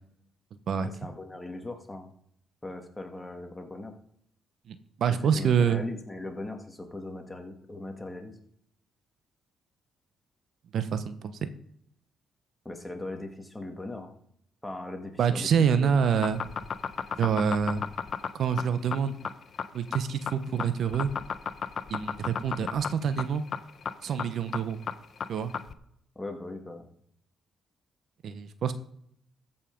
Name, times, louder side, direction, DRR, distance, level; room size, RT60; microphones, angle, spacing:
voice 1, 0.8-2.1 2.6-3.9 5.2-8.4 12.7-14.1 14.6-15.5 15.8-15.9 26.2-26.9, left 2 dB, 15° left, 4 dB, 1.9 m, -39 dB
voice 2, 4.7-5.8 10.7-11.5 15.2-16.4 17.2-17.8 18.3-19.2 19.7-21.1 21.9-23.4 24.0-24.8 25.3-25.5 28.2-28.7, right 7 dB, 65° right, 11 dB, 0.9 m, -26 dB
sound 1, 16.1-25.7, left 7 dB, 55° left, 0.8 m, -33 dB
14.0 x 5.6 x 5.3 m, 0.70 s
cardioid pair, 90°, 0 cm